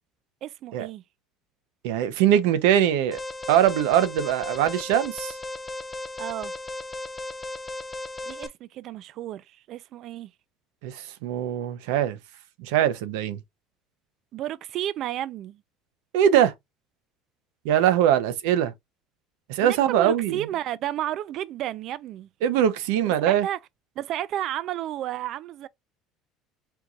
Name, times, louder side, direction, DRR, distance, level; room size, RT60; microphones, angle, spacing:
voice 1, 0.4-1.0 6.2-6.5 8.3-10.3 14.3-15.6 19.6-22.3 23.2-23.6 24.0-25.7, right 12 dB, 50° right, 0.3 m, -32 dB
voice 2, 1.8-3.2 3.5-5.3 10.8-12.2 12.6-13.4 16.1-16.5 17.6-18.7 19.5-20.4 22.4-23.5, right 10 dB, 90° right, 0.7 m, -22 dB
Alarm, 3.1-8.5, left 2 dB, 15° left, 0.6 m, -36 dB
4.5 x 2.4 x 3.9 m
cardioid pair, 145°, 0 cm